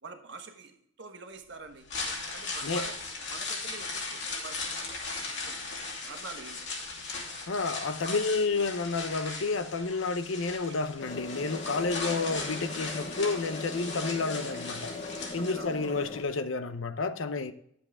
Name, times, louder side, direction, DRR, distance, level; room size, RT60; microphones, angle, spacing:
voice 1, 0.0-1.8 2.3-4.9 5.3-5.6 6.0-6.6 15.4-15.9, right 3 dB, 60° right, 1.3 m, -46 dB
sound 1, 1.7-15.9 16.2-16.3, left 3 dB, 60° left, 2.8 m, -38 dB
voice 2, 7.5-14.9 15.3-17.5, left 3 dB, 75° left, 0.7 m, -30 dB
sound 2, 11.0-16.2, left 2 dB, 35° left, 0.8 m, -40 dB
11.0 x 7.4 x 3.6 m
head